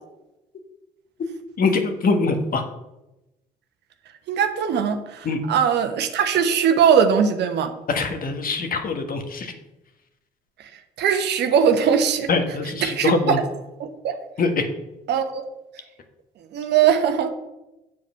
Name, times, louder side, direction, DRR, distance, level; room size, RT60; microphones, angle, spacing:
voice 1, 1.6-2.6 5.2-5.4 7.9-9.5 12.3-13.4 14.4-14.7, left 4 dB, 45° left, 6 dB, 1.5 m, -23 dB
voice 2, 4.3-7.7 11.0-12.3 12.8-13.4 14.0-14.2 15.1-15.4 16.5-17.3, right 7 dB, 55° right, 7 dB, 1.1 m, -20 dB
7.5 x 7.4 x 5.6 m, 0.96 s
figure-of-eight pair, 50°, 20 cm